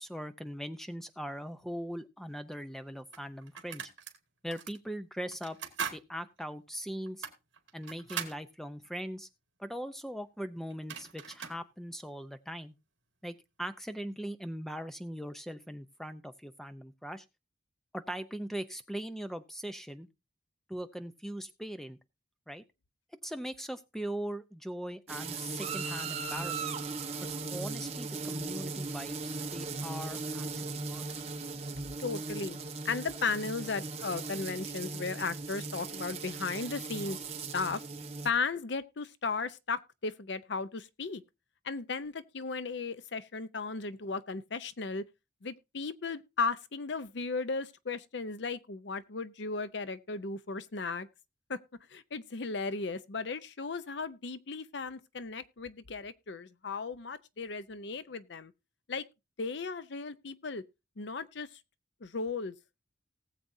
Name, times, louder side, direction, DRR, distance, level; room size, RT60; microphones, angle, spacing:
voice 1, 0.0-3.9 4.4-5.6 5.9-7.3 7.7-9.3 9.6-12.7 13.2-17.2 17.9-20.1 20.7-22.0 22.5-22.6 23.2-26.8 27.2-31.0, equal, ahead, 0.6 m, -40 dB
sound 1, 2.4-2.5 3.1-4.2 4.5-4.8 5.3-6.0 6.4-6.5 7.1-8.4 10.4-10.5 10.7-11.6, right 7 dB, 70° right, 1.9 m, -40 dB
sound 2, 25.1-38.3, right 4 dB, 35° right, 1.1 m, -38 dB
voice 2, 32.0-32.6 32.8-37.2 37.5-37.8 38.2-41.2 41.6-45.0 45.4-51.1 51.5-51.6 51.9-58.5 58.9-59.0 59.4-60.6 61.0-61.6 62.0-62.5, left 4 dB, 65° left, 0.6 m, -36 dB
19.0 x 7.5 x 2.7 m
head